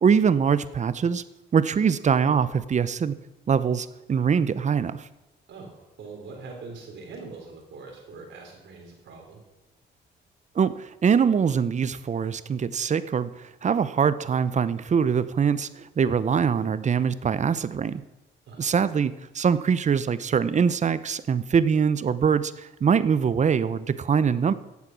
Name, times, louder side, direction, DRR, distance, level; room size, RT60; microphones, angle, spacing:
voice 1, 0.0-1.2 1.5-3.2 3.5-5.1 10.6-18.0 18.6-24.5, right 6 dB, 35° right, 15 dB, 0.7 m, -23 dB
voice 2, 5.5-9.4 18.5-18.7, right 4 dB, 70° right, 1 dB, 4.1 m, -42 dB
14.5 x 8.3 x 6.2 m, 1.0 s
cardioid pair, 90°, 20 cm